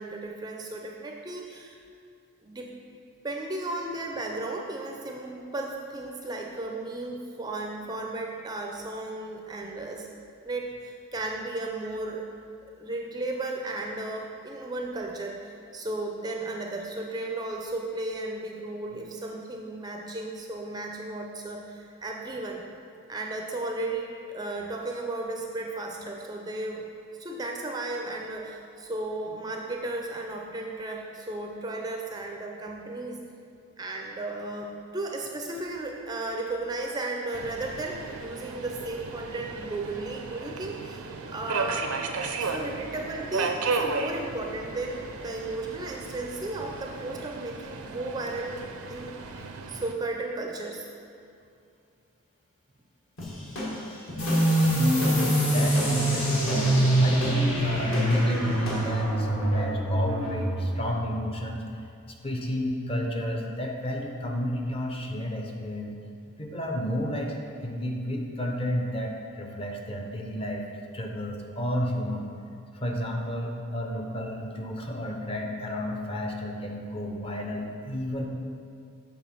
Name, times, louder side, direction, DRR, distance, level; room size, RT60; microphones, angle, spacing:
voice 1, 0.0-1.8 2.4-2.7 3.2-10.1 10.4-12.3 12.8-22.6 23.1-26.9 27.2-33.2 33.8-41.9 42.4-49.2 49.7-50.9, right 2 dB, 20° right, 1 dB, 0.4 m, -34 dB
Subway metro underground, 37.3-49.9, right 4 dB, 80° right, 0.5 m, -34 dB
sound 1, 53.2-58.9, left 1 dB, 60° left, 1.5 m, -34 dB
sound 2, 54.2-61.4, right 1 dB, 85° left, 1.8 m, -25 dB
voice 2, 54.7-61.6 62.1-65.9 66.4-70.7 70.9-72.3 72.7-78.3, equal, 25° left, 1 dB, 0.6 m, -31 dB
7.2 x 3.6 x 5.8 m, 2.4 s
head